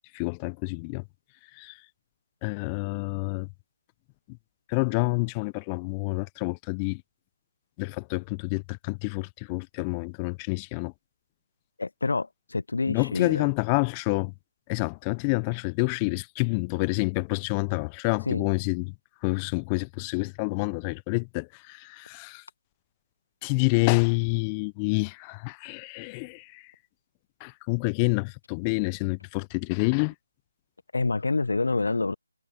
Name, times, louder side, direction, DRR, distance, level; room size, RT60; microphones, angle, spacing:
voice 1, 0.1-1.0 1.5-1.8 2.4-3.5 4.3-4.4 4.7-7.0 7.8-10.9 12.9-14.3 14.7-18.9 19.2-22.4 23.4-26.7 27.4-30.1, left 31 dB, 15° left, 0.9 m, -28 dB
voice 2, 11.8-13.4 18.3-18.4 30.9-32.2, left 3 dB, 65° left, 0.8 m, -27 dB
figure-of-eight pair, 150°, 0 cm